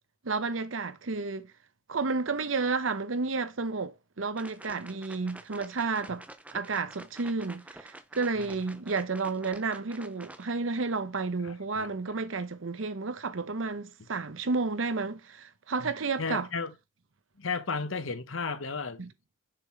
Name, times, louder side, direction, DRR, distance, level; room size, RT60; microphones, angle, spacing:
voice 1, 0.2-1.5 1.9-6.2 6.5-16.5 19.0-19.1, right 4 dB, 80° right, 0.8 m, -31 dB
sound 1, 4.4-10.5, right 1 dB, 5° right, 0.4 m, -49 dB
voice 2, 11.4-11.9 15.8-15.9 16.2-16.7 17.4-19.1, left 4 dB, 85° left, 1.0 m, -34 dB
6.7 x 3.8 x 4.3 m
head